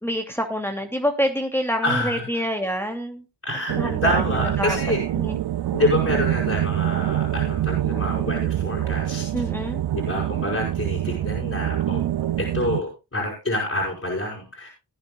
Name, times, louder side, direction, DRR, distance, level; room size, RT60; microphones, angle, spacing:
voice 1, 0.0-3.2 3.7-4.8 5.2-5.4 9.3-9.8, equal, 5° left, 3 dB, 2.6 m, -27 dB
voice 2, 1.8-2.4 3.4-5.0 5.7-9.4 9.9-14.7, left 1 dB, 35° left, -2 dB, 6.0 m, -27 dB
sound 1, 3.7-12.8, right 12 dB, 80° right, 0.5 m, -25 dB
19.0 x 9.5 x 2.4 m, 0.26 s
cardioid pair, 40°, 39 cm